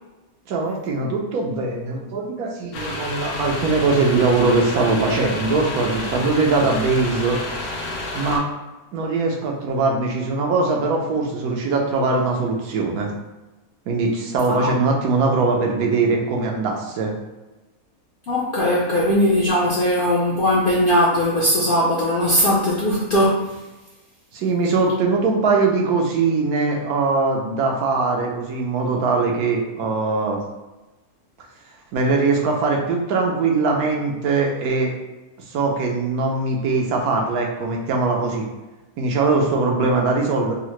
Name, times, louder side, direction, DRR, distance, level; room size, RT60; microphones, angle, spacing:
voice 1, 0.5-7.4 8.1-8.4 8.9-13.1 13.9-17.1 24.3-30.4 31.9-34.9 35.5-38.5 39.0-40.5, right 3 dB, 85° right, 0 dB, 1.1 m, -21 dB
sound 1, 2.7-8.4, left 2 dB, 90° left, 1.1 m, -30 dB
voice 2, 18.3-23.6, equal, 65° left, -6 dB, 0.5 m, -19 dB
3.7 x 2.1 x 3.0 m, 1.1 s
omnidirectional pair, 1.5 m